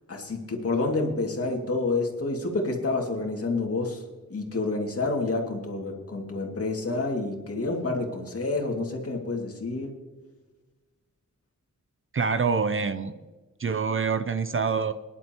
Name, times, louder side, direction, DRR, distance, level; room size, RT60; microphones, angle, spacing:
voice 1, 0.1-4.0 4.3-10.0, left 3 dB, 50° left, 1 dB, 2.3 m, -28 dB
voice 2, 12.1-13.2 13.6-14.9, right 5 dB, 45° right, 11 dB, 0.6 m, -26 dB
23.5 x 11.0 x 3.0 m, 1.3 s
wide cardioid pair, 150°, 29 cm